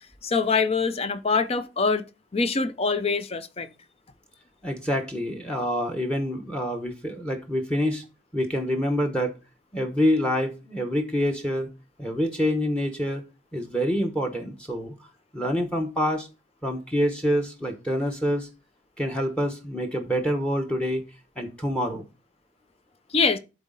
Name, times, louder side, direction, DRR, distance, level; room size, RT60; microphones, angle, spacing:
voice 1, 0.2-2.0 2.3-3.7 23.1-23.4, left 4 dB, 35° left, 0.6 m, -24 dB
voice 2, 4.6-8.0 8.3-9.4 9.7-11.7 12.0-13.2 13.5-14.9 15.3-16.3 16.6-18.5 19.0-21.0 21.4-22.0, equal, 5° left, 0.9 m, -26 dB
11.5 x 4.0 x 3.8 m
head